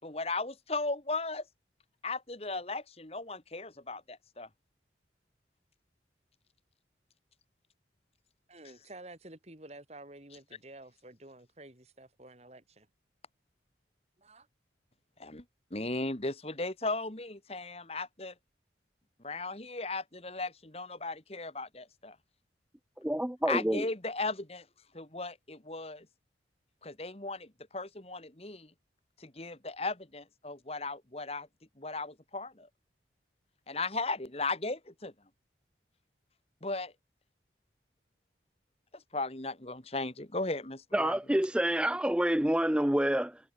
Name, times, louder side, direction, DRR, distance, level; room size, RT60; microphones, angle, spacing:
voice 1, 0.0-1.4 2.0-4.5 15.2-15.4 15.7-18.3 19.2-22.2 23.5-24.7 24.9-26.1 26.8-28.7 29.2-31.5 31.8-32.7 33.7-35.1 36.6-36.9 38.9-41.2, left 3 dB, 35° left, 1.9 m, -36 dB
voice 2, 8.5-12.9 14.2-14.5, right 2 dB, 35° right, 2.6 m, -51 dB
voice 3, 23.0-23.8 40.9-43.4, right 1 dB, 5° right, 0.4 m, -28 dB
head